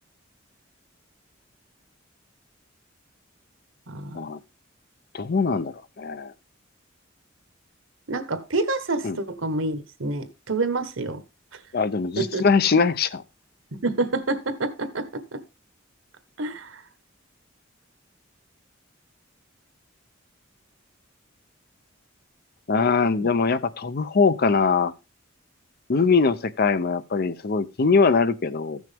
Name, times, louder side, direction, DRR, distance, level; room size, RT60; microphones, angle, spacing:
voice 1, 3.9-4.3 8.1-11.2 11.5-11.6 12.2-12.4 13.7-15.4 16.4-16.8, right 2 dB, 75° right, 1.3 m, -28 dB
voice 2, 5.1-6.3 9.0-9.2 11.7-13.2 22.7-24.9 25.9-28.8, left 4 dB, 50° left, 0.6 m, -22 dB
15.0 x 6.3 x 3.4 m
head